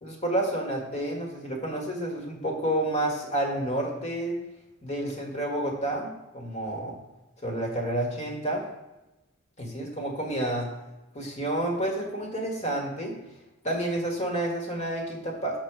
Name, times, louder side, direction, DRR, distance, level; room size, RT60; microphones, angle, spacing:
voice 1, 0.0-4.3 4.8-7.0 7.4-8.6 9.6-10.7 11.1-13.1 13.6-15.6, right 1 dB, 35° left, 0 dB, 1.6 m, -30 dB
6.1 x 4.0 x 6.1 m, 1.0 s
head